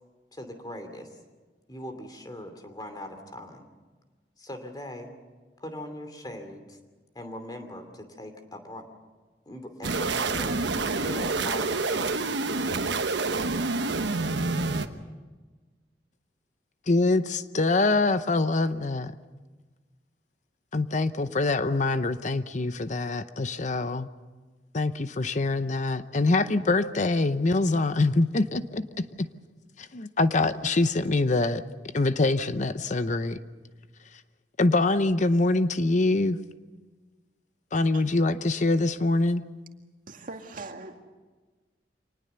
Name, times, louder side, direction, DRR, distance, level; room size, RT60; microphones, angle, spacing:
voice 1, 0.3-1.1 1.7-3.7 4.4-5.1 5.6-6.8 7.1-8.8 9.5-10.6 11.0-12.8, left 1 dB, 25° left, 6 dB, 2.7 m, -40 dB
sound 1, 9.8-14.9, right 3 dB, 85° right, 1.2 m, -27 dB
voice 2, 16.9-19.1 20.7-24.1 24.7-29.3 29.8-31.6 31.9-33.4 34.6-36.4 37.7-39.5, left 2 dB, 45° left, 12 dB, 0.7 m, -24 dB
voice 3, 40.1-41.0, right 3 dB, 50° right, 4 dB, 2.1 m, -41 dB
25.5 x 19.5 x 6.9 m, 1.3 s
head